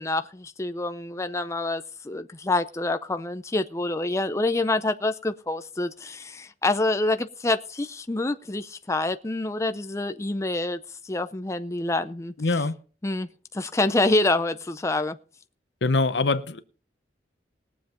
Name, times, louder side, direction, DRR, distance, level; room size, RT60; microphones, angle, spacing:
voice 1, 0.0-12.3 13.0-15.2, left 2 dB, 15° left, 0.5 m, -27 dB
voice 2, 12.4-12.8 15.8-16.6, left 3 dB, 80° left, 0.9 m, -23 dB
21.0 x 7.4 x 3.9 m
head